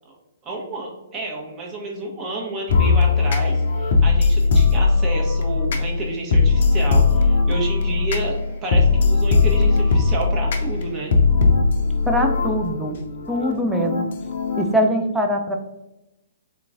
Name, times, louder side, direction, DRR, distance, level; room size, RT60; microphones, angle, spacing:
voice 1, 0.4-8.3 8.6-11.1, right 2 dB, 25° right, -1 dB, 1.0 m, -30 dB
sound 1, 2.7-14.9, left 4 dB, 55° left, 0.5 m, -19 dB
voice 2, 12.1-13.0 13.3-14.1 14.6-15.6, equal, 5° right, 2 dB, 0.5 m, -22 dB
3.6 x 2.9 x 2.5 m, 0.94 s
figure-of-eight pair, 120°, 0 cm